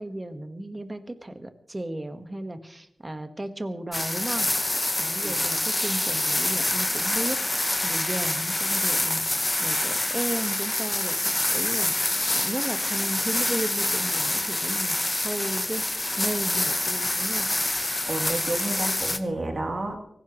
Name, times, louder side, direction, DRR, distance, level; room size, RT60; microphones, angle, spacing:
voice 1, 0.0-4.5 5.0-9.2 9.6-11.9 12.3-15.0 15.2-15.8 16.2-17.5, right 1 dB, 25° right, 8 dB, 1.3 m, -34 dB
sound 1, 3.9-19.2, left 1 dB, 20° left, 0.9 m, -26 dB
voice 2, 18.0-20.0, right 2 dB, 50° right, 1 dB, 3.1 m, -30 dB
24.0 x 15.5 x 3.1 m, 0.76 s
wide cardioid pair, 115°, 0 cm